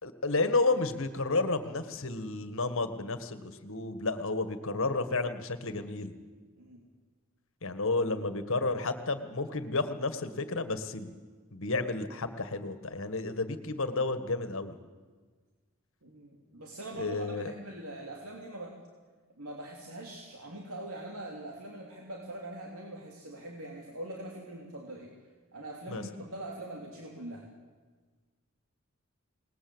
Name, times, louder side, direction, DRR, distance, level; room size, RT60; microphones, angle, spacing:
voice 1, 0.0-6.1 7.6-11.1 11.5-14.8 16.9-17.5 25.9-26.0, left 3 dB, 65° left, 10 dB, 1.7 m, -31 dB
voice 2, 16.0-18.8 19.4-25.1 25.5-27.5, right 1 dB, 80° right, -1 dB, 3.3 m, -43 dB
27.5 x 20.0 x 8.0 m, 1.4 s
head